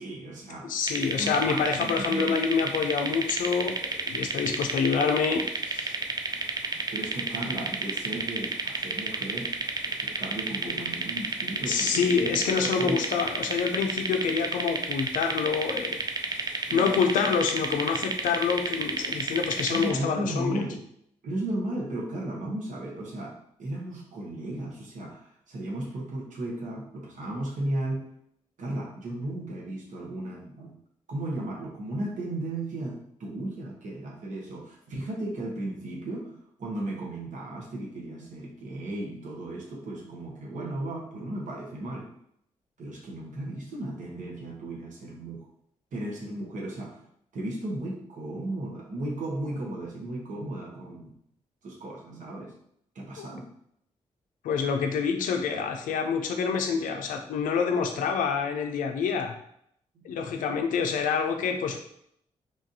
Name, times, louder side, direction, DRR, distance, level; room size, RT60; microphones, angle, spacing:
voice 1, 0.0-0.7 1.2-2.4 6.9-9.5 9.8-13.0 16.7-17.0 19.7-20.8 21.2-28.0 28.6-30.8 31.1-42.1 42.8-45.5 45.9-47.0 47.3-51.1 51.6-52.5 52.9-53.5, right 1 dB, 70° right, -2 dB, 0.9 m, -35 dB
voice 2, 0.6-5.9 10.8-10.9 11.7-20.6 53.2-53.3 54.4-59.3 60.0-61.8, left 6 dB, 85° left, 5 dB, 0.4 m, -27 dB
sound 1, 0.9-19.9, right 3 dB, 30° right, 0.4 m, -31 dB
3.3 x 2.4 x 2.6 m, 0.71 s
supercardioid pair, 45°, 13 cm